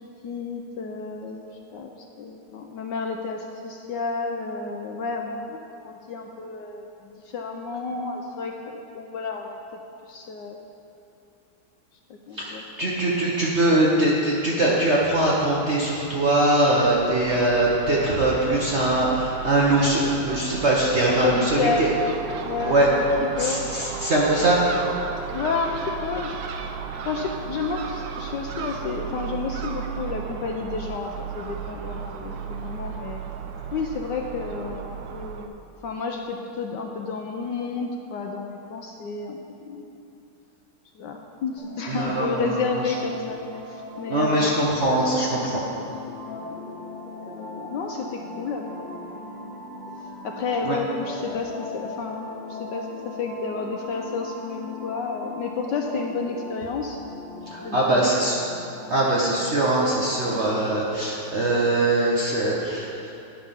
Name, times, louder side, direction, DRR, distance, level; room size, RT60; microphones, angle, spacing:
voice 1, 0.2-1.5 1.7-1.9 2.2-9.8 10.1-10.6 12.3-12.6 21.2-22.0 22.5-23.0 23.4-23.6 25.3-26.4 27.1-33.2 33.7-39.4 39.7-39.9 40.9-44.6 46.2-46.6 47.0-49.1 49.5-49.6 50.2-57.0 57.6-58.2, left 4 dB, 75° left, 2 dB, 1.1 m, -31 dB
voice 2, 12.3-21.9 22.6-22.9 23.4-24.6 41.9-42.9 44.1-45.6 50.6-50.8 57.5-58.3 58.9-63.1, right 1 dB, 50° right, -5 dB, 0.8 m, -22 dB
Crow / Gull seagull, 16.8-35.5, right 7 dB, 85° right, 0.8 m, -34 dB
sound 1, 41.6-60.8, left 3 dB, 25° left, 2.3 m, -39 dB
10.5 x 5.3 x 5.6 m, 2.8 s
omnidirectional pair, 2.3 m